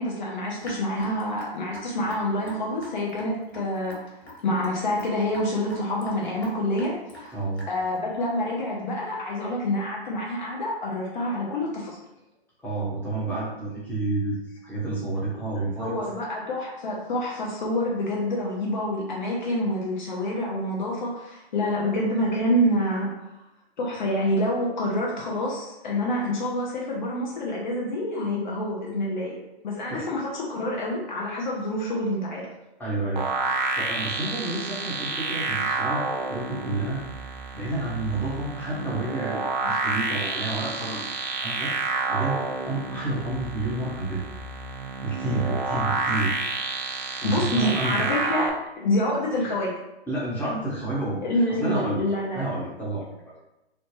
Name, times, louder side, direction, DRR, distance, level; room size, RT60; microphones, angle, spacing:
voice 1, 0.0-4.0 4.4-7.4 7.7-12.0 15.8-23.3 23.8-29.4 29.6-32.5 47.2-49.7 51.2-52.5, left 1 dB, 45° left, -3 dB, 0.7 m, -27 dB
Raindrop / Drip, 0.6-8.0, left 1 dB, 85° left, 1.1 m, -42 dB
voice 2, 7.3-7.7 12.6-16.0 29.9-30.0 32.8-33.3 33.8-37.0 37.5-44.2 45.0-46.4 47.2-48.1 50.1-52.0 52.3-53.1, right 2 dB, 5° left, -7 dB, 0.7 m, -30 dB
sound 1, 33.1-48.5, right 4 dB, 45° right, 0.5 m, -29 dB
3.1 x 2.0 x 3.0 m, 0.93 s
figure-of-eight pair, 120°, 31 cm